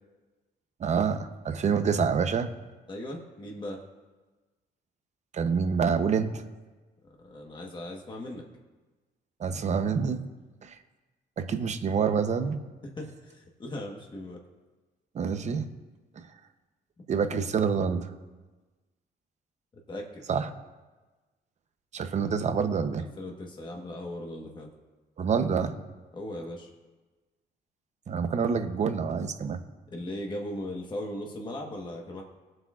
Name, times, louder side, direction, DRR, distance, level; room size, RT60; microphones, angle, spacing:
voice 1, 0.8-2.5 5.3-6.4 9.4-10.2 10.6-10.8 11.4-12.6 15.1-15.7 17.1-18.1 20.3-20.5 21.9-23.1 25.2-25.7 28.1-29.6, right 6 dB, 40° right, 9 dB, 0.7 m, -27 dB
voice 2, 2.9-3.8 7.2-8.4 12.8-14.4 19.9-20.2 23.2-24.7 26.1-26.7 29.9-32.2, left 1 dB, 25° left, 0 dB, 1.2 m, -38 dB
22.0 x 7.7 x 2.4 m, 1.2 s
cardioid pair, 155°, 17 cm